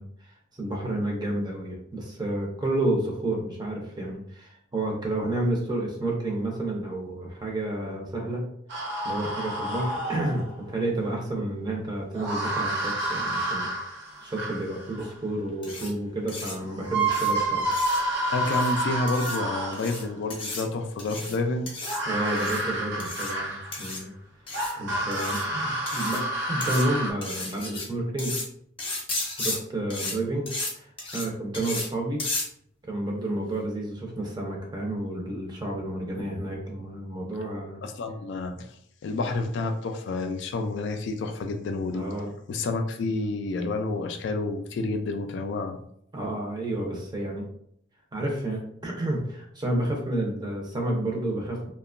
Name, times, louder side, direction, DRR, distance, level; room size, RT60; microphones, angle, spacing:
voice 1, 0.0-8.5 9.0-13.7 14.2-17.7 22.1-24.1 24.8-26.2 26.5-28.4 29.4-32.3 32.8-37.8 41.9-42.3 46.1-47.4 48.1-51.7, right 1 dB, 20° right, -1 dB, 0.5 m, -30 dB
sound 1, 8.7-10.6 12.1-15.1 16.4-16.5 16.8-20.1 21.8-23.9 24.5-27.1, right 2 dB, 60° right, 0.7 m, -29 dB
sound 2, 15.6-15.9 16.3-16.5 17.1-17.3 17.7-18.0 18.4-18.7 19.1-19.4 19.7-20.0 20.3-20.6 21.0-21.4 21.7-22.0 22.4-22.6 23.0-23.3 23.7-24.0 24.5-24.7 25.1-25.4 25.9-26.2 26.6-26.8 27.2-27.8 28.2-28.4 28.8-29.6 29.9-30.1 30.5-30.7 31.0-31.3 31.5-31.9 32.2-32.4, left 2 dB, 25° left, 0.7 m, -33 dB
voice 2, 18.3-21.7 36.2-36.3 37.8-38.7 39.0-42.1 42.5-45.8, left 3 dB, 60° left, 5 dB, 0.3 m, -29 dB
2.8 x 2.2 x 2.4 m, 0.68 s
head